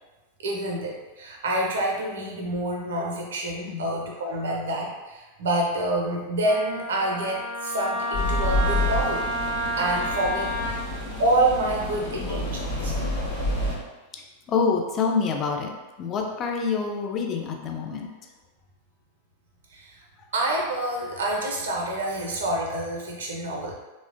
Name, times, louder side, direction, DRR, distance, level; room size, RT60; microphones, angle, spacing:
voice 1, 0.4-9.3 9.7-10.8 11.2-13.0 19.7-20.0 20.3-23.7, right 1 dB, 65° right, -1 dB, 0.5 m, -27 dB
Wind instrument woodwind instrument, 6.4-10.7, right 1 dB, 80° left, 0.8 m, -30 dB
sound 1, 8.1-13.8, left 1 dB, 55° left, 0.9 m, -28 dB
voice 2, 12.3-13.0 14.1-15.7 16.0-18.1, left 5 dB, 30° left, 2 dB, 0.3 m, -27 dB
2.9 x 2.0 x 2.5 m, 1.1 s
figure-of-eight pair, 90°, 0 cm